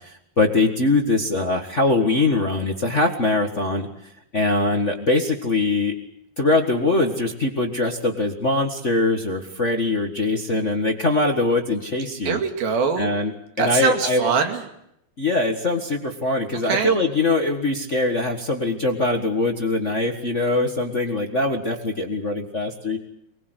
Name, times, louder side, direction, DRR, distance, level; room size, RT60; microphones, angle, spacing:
voice 1, 0.4-5.9 6.4-12.4 13.0-13.3 13.6-14.3 15.2-23.0, left 2 dB, 45° left, 3 dB, 0.9 m, -22 dB
voice 2, 12.3-13.1 13.6-14.6 16.6-17.0, right 6 dB, 80° right, 5 dB, 4.1 m, -23 dB
24.5 x 21.5 x 8.1 m, 0.78 s
omnidirectional pair, 4.2 m